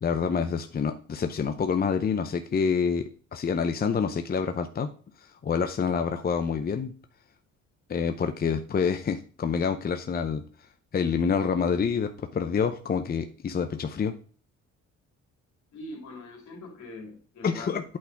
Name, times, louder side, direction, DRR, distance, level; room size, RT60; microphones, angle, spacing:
voice 1, 0.0-4.9 5.2-6.9 7.9-10.4 10.9-14.1 17.4-17.8, left 6 dB, 30° left, 7 dB, 0.6 m, -27 dB
voice 2, 15.7-17.7, left 2 dB, 70° left, 1 dB, 2.7 m, -42 dB
8.6 x 4.1 x 4.5 m, 0.42 s
cardioid pair, 90°, 30 cm